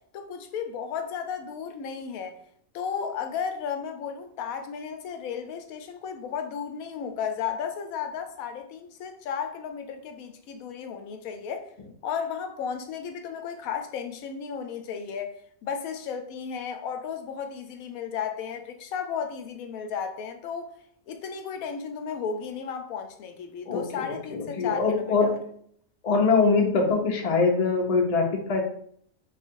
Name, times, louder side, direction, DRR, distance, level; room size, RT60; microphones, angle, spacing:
voice 1, 0.1-2.4 2.7-11.7 12.0-15.3 15.6-20.7 21.1-25.4, left 7 dB, 90° left, 1.0 m, -34 dB
voice 2, 23.7-25.4 26.0-28.6, left 4 dB, 40° left, 0.6 m, -23 dB
3.3 x 2.4 x 4.4 m
omnidirectional pair, 1.4 m